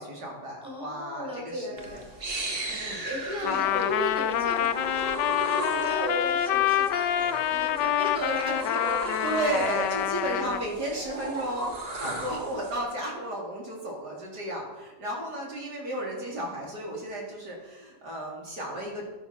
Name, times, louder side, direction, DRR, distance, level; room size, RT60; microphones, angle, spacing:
voice 1, 0.0-2.0 2.7-3.0 3.4-3.9 9.2-19.1, right 1 dB, 70° right, -2 dB, 4.3 m, -33 dB
voice 2, 0.6-2.0 3.0-5.0 5.5-9.3 9.8-9.9, equal, 5° right, -2 dB, 4.3 m, -35 dB
sound 1, 1.8-12.8, right 2 dB, 35° right, 1.9 m, -36 dB
Trumpet, 3.4-10.7, left 11 dB, 80° left, 1.3 m, -27 dB
13.0 x 12.5 x 5.9 m, 1.1 s
omnidirectional pair, 1.8 m